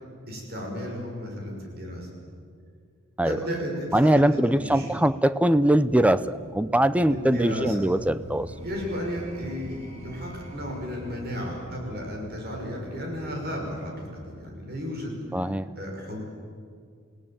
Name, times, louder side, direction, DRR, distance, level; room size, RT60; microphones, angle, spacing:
voice 1, 0.3-2.1 3.2-4.9 7.1-7.7 8.6-15.5 15.8-16.2, equal, 50° right, 0 dB, 6.2 m, -34 dB
voice 2, 3.9-8.5 15.3-15.7, right 1 dB, 5° right, 14 dB, 0.6 m, -22 dB
sound 1, 5.5-14.5, equal, 35° right, 3.1 m, -44 dB
28.5 x 17.5 x 8.9 m, 2.2 s
head